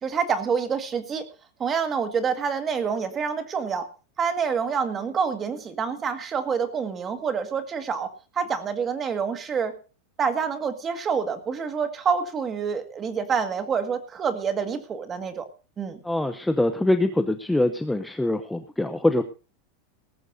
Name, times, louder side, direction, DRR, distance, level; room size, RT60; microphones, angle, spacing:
voice 1, 0.0-1.2 1.6-3.9 4.2-8.1 8.4-9.7 10.2-15.5 15.8-16.0, right 6 dB, 20° right, 9 dB, 1.8 m, -27 dB
voice 2, 16.0-19.2, left 1 dB, 5° left, 8 dB, 0.7 m, -23 dB
19.0 x 14.5 x 2.7 m, 0.34 s
supercardioid pair, 170°, 0 cm